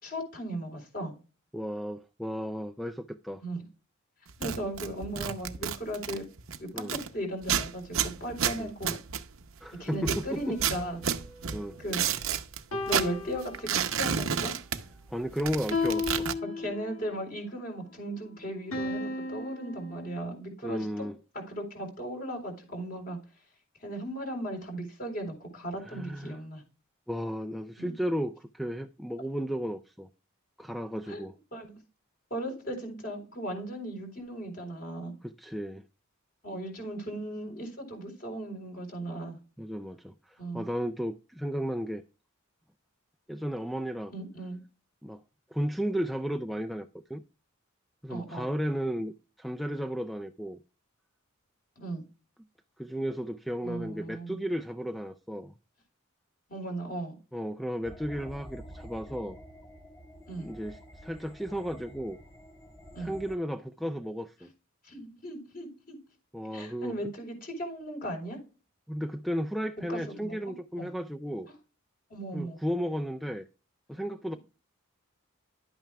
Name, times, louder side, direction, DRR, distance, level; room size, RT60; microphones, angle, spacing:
voice 1, 0.0-1.1 3.4-3.6 4.4-6.3 6.6-9.0 9.8-11.0 11.8-12.0 12.9-14.5 16.6-21.1 21.3-23.2 23.8-26.6 27.8-28.0 31.1-31.3 31.5-31.8 32.3-35.1 36.4-39.4 40.4-40.6 44.1-44.6 48.1-48.5 51.8-52.0 53.6-54.4 56.5-57.2 60.3-60.5 62.9-63.2 64.8-66.0 66.5-68.4 69.9-70.4 70.8-70.9 72.1-72.6, right 1 dB, 45° left, 3.9 m, -37 dB
voice 2, 1.5-3.4 6.7-6.9 8.6-8.7 9.6-10.5 11.5-11.8 15.1-16.3 20.6-21.1 25.9-26.4 27.1-30.1 30.6-31.3 35.2-35.9 39.6-42.0 43.3-44.1 45.0-45.2 45.5-47.2 48.0-50.6 52.8-55.5 57.3-59.4 60.4-62.2 63.0-64.5 66.3-66.9 68.9-71.5 72.3-73.5 73.9-74.4, equal, ahead, 0.3 m, -34 dB
sound 1, 4.3-7.1 7.4-9.6 10.0-12.6 12.9-15.1 15.4-16.3, right 8 dB, 70° right, 0.7 m, -31 dB
sound 2, 10.4-12.1 12.7-14.2 15.7-17.2 18.7-20.2, left 3 dB, 75° left, 2.0 m, -35 dB
sound 3, 57.8-63.4, equal, 20° left, 1.5 m, -48 dB
11.5 x 8.9 x 2.3 m
head